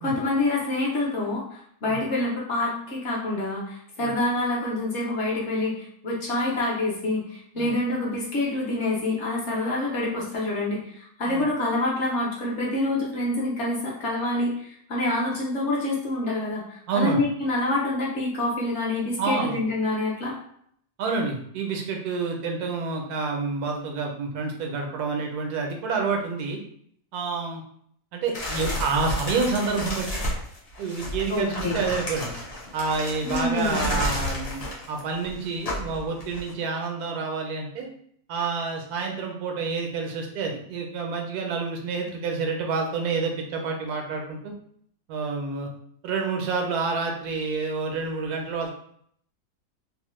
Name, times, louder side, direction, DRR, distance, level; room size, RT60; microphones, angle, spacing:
voice 1, 0.0-20.3 31.3-31.8 33.2-33.8, left 2 dB, 55° left, -4 dB, 0.9 m, -27 dB
voice 2, 16.9-17.2 19.2-19.6 21.0-26.6 27.1-27.6 28.1-30.1 30.8-32.3 32.7-37.9 38.3-44.5 45.1-45.7 46.0-48.7, right 4 dB, 85° right, 2 dB, 1.1 m, -28 dB
sound 1, 28.3-36.5, left 1 dB, 40° left, 0.5 m, -31 dB
2.9 x 2.0 x 3.0 m, 0.66 s
omnidirectional pair, 1.6 m